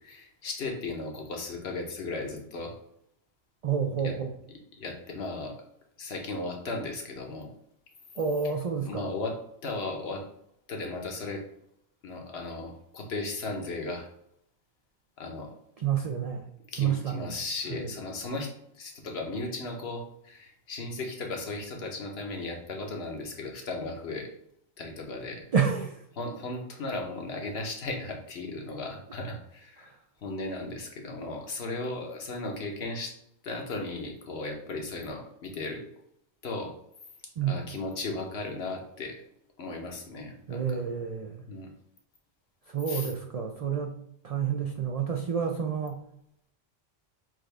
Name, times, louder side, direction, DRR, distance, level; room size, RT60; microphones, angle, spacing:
voice 1, 0.0-2.7 4.0-4.1 4.8-5.5 6.0-7.5 8.8-9.3 9.6-10.2 10.7-11.4 12.0-14.1 15.2-15.5 16.7-18.5 18.8-24.3 24.8-25.5 26.2-29.9 30.2-33.1 33.4-35.8 36.4-36.7 37.5-39.2 39.6-40.8 41.5-41.7 42.9-43.1, left 2 dB, 65° left, 2 dB, 1.1 m, -36 dB
voice 2, 3.6-4.3 8.2-9.0 15.8-16.4 16.8-17.3 17.7-17.9 25.5-26.0 29.8-30.0 37.4-37.7 40.5-41.4 42.7-44.0 44.2-46.0, right 7 dB, 55° right, 3 dB, 0.4 m, -29 dB
6.1 x 2.4 x 3.3 m, 0.75 s
omnidirectional pair, 1.2 m